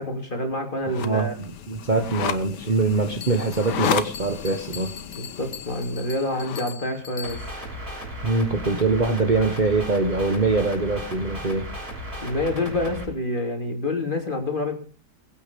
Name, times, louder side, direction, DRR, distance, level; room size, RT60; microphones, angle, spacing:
voice 1, 0.0-1.3 1.9-2.0 5.2-7.4 12.2-14.8, left 1 dB, 30° left, 4 dB, 3.0 m, -27 dB
sound 1, 0.9-6.7, left 8 dB, 80° left, 1.7 m, -32 dB
voice 2, 1.0-5.0 8.2-11.7, right 3 dB, 30° right, 5 dB, 1.2 m, -23 dB
Bell, 3.2-7.7, left 8 dB, 50° left, 1.3 m, -41 dB
sound 2, 7.2-13.0, equal, 60° right, 6.3 m, -35 dB
22.0 x 8.9 x 5.2 m, 0.38 s
omnidirectional pair, 1.8 m